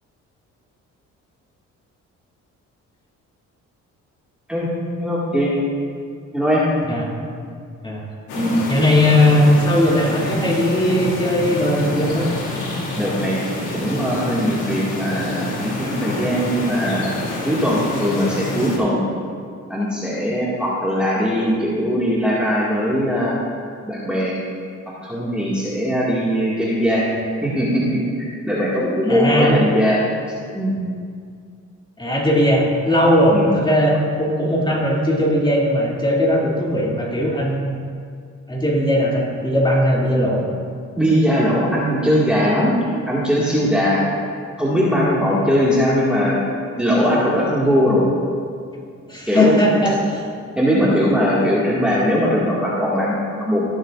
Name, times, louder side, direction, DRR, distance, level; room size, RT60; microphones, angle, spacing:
voice 1, 5.0-5.5 6.3-6.7 8.3-8.5 13.0-13.4 13.7-17.1 17.4-19.1 19.7-23.4 23.9-24.4 25.0-27.1 27.4-30.0 30.5-30.8 33.3-33.5 41.0-42.8 43.1-44.0 44.6-46.4 46.8-48.0 49.3-49.6 50.6-53.6, equal, 5° right, -8 dB, 2.0 m, -20 dB
sound 1, 8.3-18.8, left 2 dB, 80° left, 2.3 m, -27 dB
voice 2, 8.7-12.3 29.1-29.6 32.0-37.8 38.5-40.4 49.1-50.2, left 1 dB, 15° left, -4 dB, 2.6 m, -18 dB
18.5 x 7.2 x 2.5 m, 2.2 s
cardioid pair, 90°, 30 cm